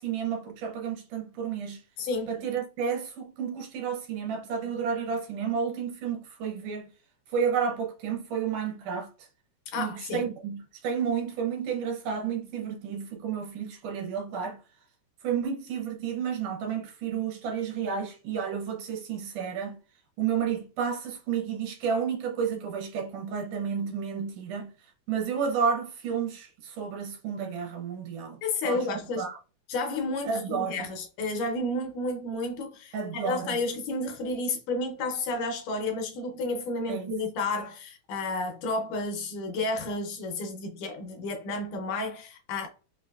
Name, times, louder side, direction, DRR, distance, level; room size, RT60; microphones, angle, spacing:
voice 1, 0.0-1.8 2.3-6.9 7.3-9.3 9.8-14.6 15.2-19.8 20.2-24.7 25.1-28.4 28.6-28.9 29.2-29.4 30.2-30.9 32.9-33.6 36.9-37.1, right 7 dB, 80° right, 1.9 m, -31 dB
voice 2, 9.7-10.3 28.4-29.3 29.7-42.7, left 2 dB, 80° left, 1.9 m, -31 dB
5.8 x 2.5 x 2.2 m
omnidirectional pair, 4.3 m